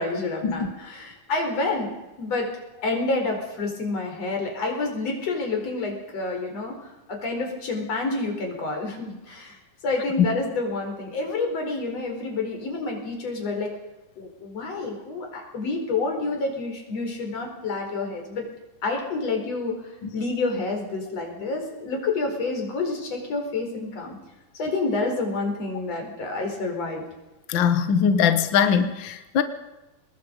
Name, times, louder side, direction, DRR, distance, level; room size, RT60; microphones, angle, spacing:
voice 1, 0.0-1.9 2.2-2.5 2.8-9.6 9.8-13.7 14.2-18.5 18.8-24.2 24.6-27.0, left 3 dB, 45° left, 2 dB, 5.6 m, -28 dB
voice 2, 27.5-29.4, left 7 dB, 85° left, 10 dB, 1.0 m, -21 dB
25.0 x 20.0 x 5.4 m, 1.0 s
omnidirectional pair, 4.3 m